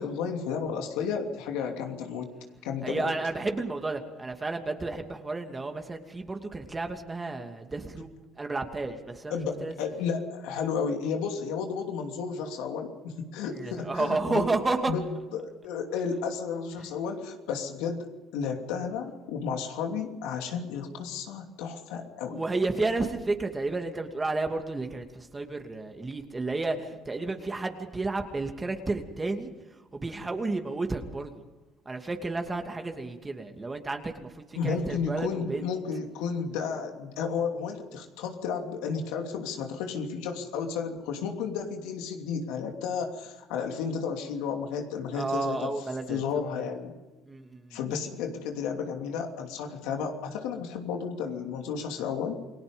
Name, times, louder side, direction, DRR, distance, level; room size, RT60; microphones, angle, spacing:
voice 1, 0.0-2.3 2.6-3.1 9.3-14.5 14.9-18.1 18.3-22.4 34.5-45.7 46.1-46.9 47.7-52.3, left 6 dB, 85° left, 3 dB, 2.9 m, -32 dB
voice 2, 2.8-8.1 8.4-9.8 13.5-14.9 16.8-16.9 22.3-31.4 31.9-35.7 45.1-46.2 47.3-47.8, right 3 dB, 20° right, 4 dB, 2.7 m, -32 dB
29.0 x 18.5 x 5.4 m, 1.2 s
supercardioid pair, 85°, 0 cm